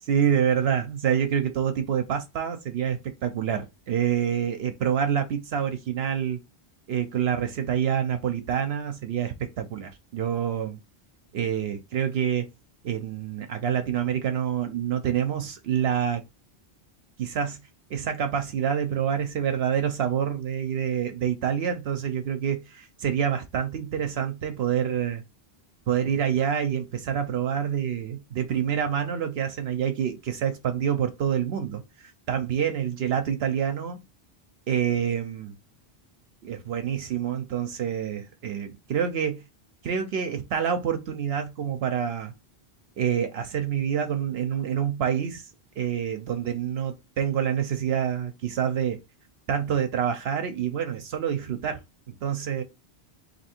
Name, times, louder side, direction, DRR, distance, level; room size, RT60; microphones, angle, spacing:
voice 1, 0.1-6.4 6.9-10.8 11.3-12.5 12.8-16.2 17.2-17.6 17.9-25.2 25.9-34.0 34.7-35.5 36.4-39.4 39.8-42.3 43.0-45.5 45.8-49.0 49.5-51.8 52.1-52.6, right 8 dB, 75° right, 0.8 m, -27 dB
3.4 x 2.8 x 4.2 m
omnidirectional pair, 1.1 m